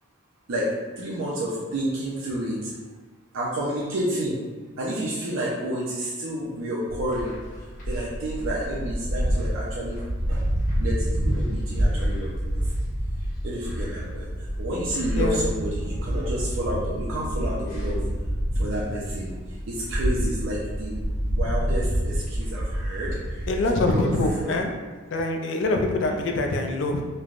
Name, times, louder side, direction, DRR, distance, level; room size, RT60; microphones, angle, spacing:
voice 1, 1.0-2.7 3.3-4.4 4.8-7.3 7.9-10.0 10.3-10.4 10.8-12.3 13.4-14.3 14.6-18.1 18.6-19.3 19.7-21.0 21.2-23.5 23.7-24.1 24.4-24.6 26.1-26.2, right 1 dB, 70° right, -6 dB, 0.4 m, -30 dB
sound 1, 6.9-24.4, equal, 40° left, 1.0 m, -28 dB
voice 2, 15.2-15.5 23.5-24.7 25.1-27.0, left 2 dB, 60° left, 3 dB, 0.3 m, -24 dB
3.2 x 2.1 x 2.4 m, 1.4 s
head